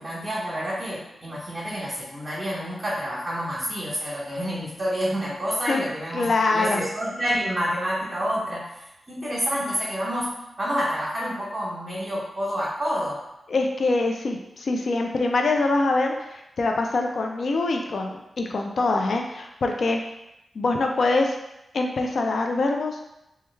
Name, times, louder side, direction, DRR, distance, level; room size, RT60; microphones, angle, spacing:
voice 1, 0.0-13.2, equal, 35° right, -8 dB, 0.9 m, -28 dB
voice 2, 6.1-6.8 13.5-20.0 20.5-21.3 21.7-23.0, left 3 dB, 70° left, 3 dB, 0.4 m, -24 dB
3.1 x 2.3 x 3.3 m, 0.89 s
cardioid pair, 75°, 0 cm